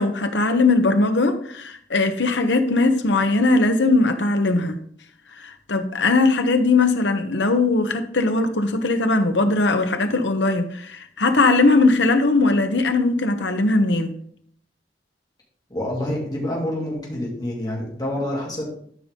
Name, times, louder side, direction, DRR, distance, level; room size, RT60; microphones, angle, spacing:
voice 1, 0.0-4.8 5.4-14.1, left 3 dB, 80° left, 1.1 m, -19 dB
voice 2, 15.7-18.7, left 1 dB, 25° left, 3.2 m, -27 dB
13.0 x 5.4 x 3.8 m
head